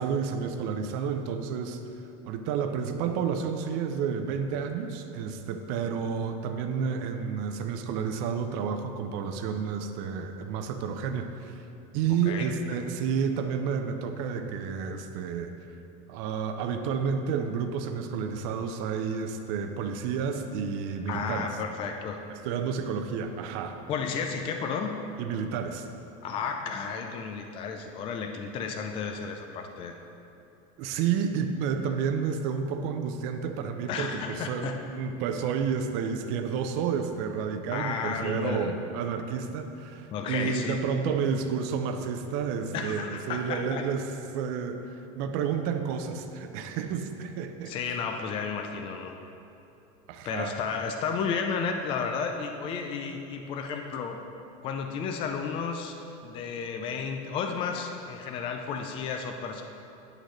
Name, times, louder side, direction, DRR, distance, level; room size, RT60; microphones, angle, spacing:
voice 1, 0.0-1.8 2.2-11.6 11.9-15.5 16.1-21.5 22.4-23.8 25.2-25.9 30.8-44.1 44.3-47.7 50.1-50.5, right 6 dB, 55° right, 7 dB, 0.6 m, -30 dB
voice 2, 21.1-22.2 23.9-24.9 26.2-30.0 33.9-34.7 37.7-38.7 40.1-40.8 42.7-43.8 47.7-49.2 50.2-54.2 54.6-59.6, left 6 dB, 30° left, 4 dB, 0.4 m, -32 dB
9.8 x 6.5 x 3.2 m, 2.8 s
cardioid pair, 160°, 19 cm